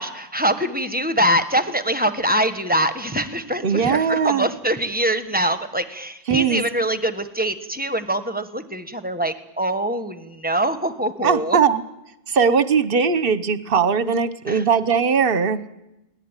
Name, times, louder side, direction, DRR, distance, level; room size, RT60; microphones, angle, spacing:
voice 1, 0.0-11.6 14.5-14.6, right 1 dB, 5° right, 10 dB, 1.2 m, -23 dB
voice 2, 3.6-4.5 6.3-6.6 11.2-11.8 12.3-15.6, right 6 dB, 40° right, 14 dB, 1.1 m, -19 dB
29.0 x 19.0 x 9.0 m, 0.95 s
omnidirectional pair, 1.6 m